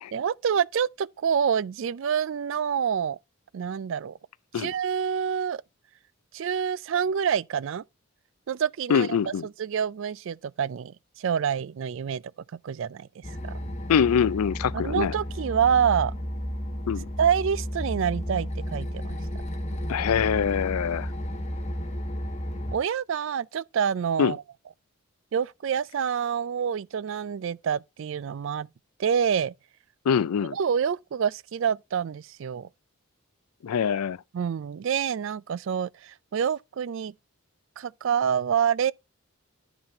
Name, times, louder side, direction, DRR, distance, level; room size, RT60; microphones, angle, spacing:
voice 1, 0.1-3.2 3.5-4.2 4.5-5.6 6.3-7.8 8.5-12.2 12.6-13.6 14.7-16.1 17.2-19.2 22.7-24.4 25.3-28.7 29.0-29.5 30.4-32.7 34.3-37.1 37.8-38.9, right 7 dB, 60° right, 0.3 m, -27 dB
voice 2, 8.9-9.5 13.9-15.1 16.9-17.1 19.9-21.1 24.2-24.3 30.1-30.6 33.6-34.2, left 7 dB, 85° left, 0.4 m, -24 dB
sound 1, 13.2-22.8, equal, 30° left, 1.0 m, -33 dB
10.5 x 4.0 x 4.2 m
head